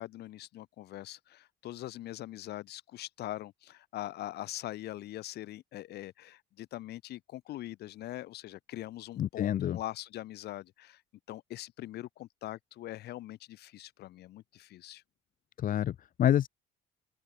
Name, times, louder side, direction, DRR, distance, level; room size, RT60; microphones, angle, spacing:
voice 1, 0.0-11.0 11.3-15.0, left 15 dB, 75° left, 7.2 m, -42 dB
voice 2, 9.2-9.8 15.6-16.5, left 11 dB, 55° left, 1.2 m, -27 dB
open air
cardioid pair, 110°, 17 cm